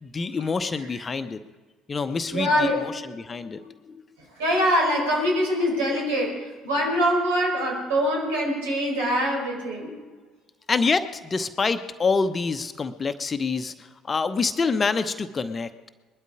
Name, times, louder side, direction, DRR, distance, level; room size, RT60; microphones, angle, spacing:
voice 1, 0.0-1.4 1.9-4.0 10.7-15.9, left 4 dB, 30° left, 9 dB, 0.9 m, -27 dB
voice 2, 2.3-2.9 4.4-6.4 6.6-9.9, equal, 75° right, -2 dB, 4.9 m, -23 dB
21.0 x 12.5 x 4.9 m, 1.4 s
figure-of-eight pair, 55°, 0 cm